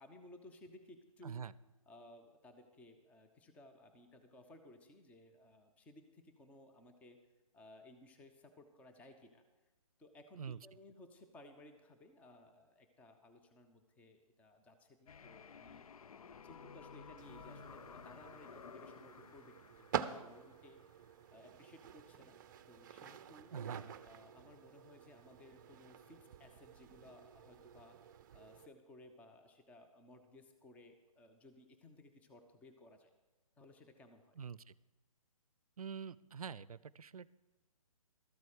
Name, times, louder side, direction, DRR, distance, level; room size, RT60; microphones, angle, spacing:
voice 1, 0.0-1.4 1.9-7.2 7.5-9.4 10.0-15.8 16.3-20.8 21.3-22.4 22.7-23.5 24.0-28.0 28.3-33.1 33.6-34.4, left 1 dB, 5° left, 6 dB, 0.7 m, -59 dB
voice 2, 1.2-1.5 10.4-10.6 23.5-23.9 34.4-34.7 35.8-37.3, right 6 dB, 75° right, 20 dB, 0.5 m, -45 dB
sound 1, 15.1-21.0, left 6 dB, 75° left, 0.4 m, -55 dB
sound 2, 17.2-28.7, right 9 dB, 35° right, 0.6 m, -48 dB
13.0 x 8.1 x 6.5 m, 1.1 s
figure-of-eight pair, 140°, 19 cm